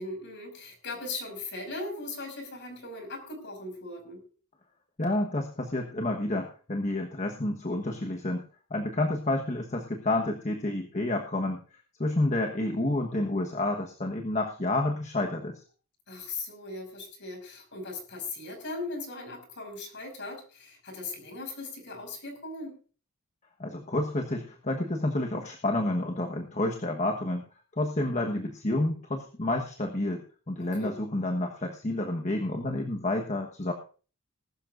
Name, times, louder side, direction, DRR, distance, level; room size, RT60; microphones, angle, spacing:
voice 1, 0.0-4.2 16.1-22.8 30.6-31.0, left 2 dB, 55° left, 4 dB, 5.8 m, -39 dB
voice 2, 5.0-8.4 8.7-11.6 12.0-15.6 23.6-27.4 27.8-33.7, left 2 dB, 30° left, 3 dB, 1.2 m, -29 dB
20.0 x 12.5 x 2.5 m, 0.39 s
head